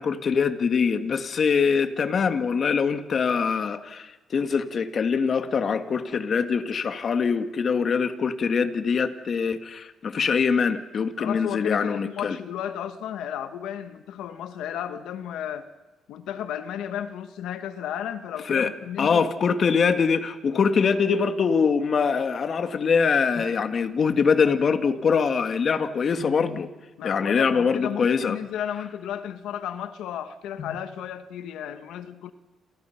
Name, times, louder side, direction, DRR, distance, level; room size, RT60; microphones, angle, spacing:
voice 1, 0.0-12.4 18.5-18.7 19.0-26.7 27.0-28.4 30.6-30.8, left 5 dB, 40° left, 9 dB, 1.6 m, -23 dB
voice 2, 11.2-15.7 16.1-19.3 27.0-32.3, left 9 dB, 80° left, 10 dB, 1.3 m, -33 dB
28.5 x 28.5 x 5.8 m, 1.1 s
cardioid pair, 135°, 0 cm